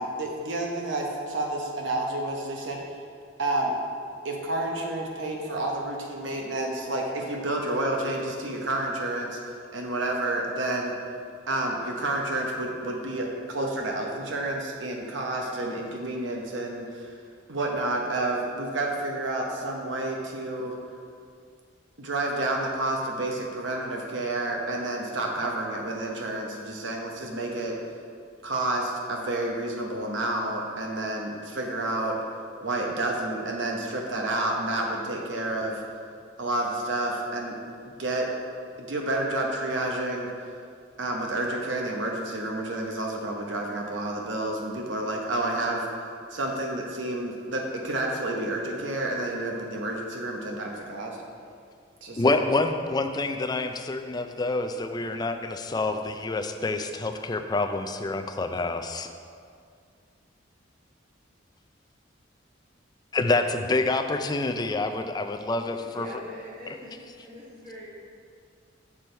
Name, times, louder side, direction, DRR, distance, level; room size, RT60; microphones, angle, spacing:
voice 1, 0.0-2.8 3.4-3.7 4.2-9.4 9.7-10.9 11.5-17.1 17.5-20.8 22.0-27.7 28.4-32.2 32.6-35.8 36.4-37.5 38.0-38.3 38.8-40.3 41.0-45.9 46.3-51.2 52.0-52.2, right 2 dB, 70° right, 0 dB, 0.9 m, -30 dB
voice 2, 52.2-59.1 63.1-66.1, left 2 dB, 20° left, 7 dB, 0.3 m, -27 dB
voice 3, 65.8-67.9, equal, 45° right, -8 dB, 1.8 m, -43 dB
6.8 x 6.1 x 4.4 m, 2.2 s
head